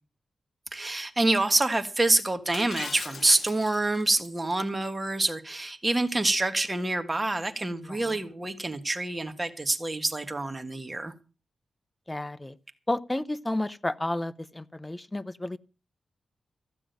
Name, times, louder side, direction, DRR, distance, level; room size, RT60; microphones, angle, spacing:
voice 1, 0.7-11.1, right 2 dB, 20° right, 1.6 m, -27 dB
Shatter, 2.5-4.3, left 6 dB, 65° left, 0.7 m, -41 dB
voice 2, 7.8-8.2 12.1-12.6 12.9-15.6, left 1 dB, 15° left, 0.7 m, -32 dB
15.0 x 6.1 x 9.3 m
cardioid pair, 85°, 0 cm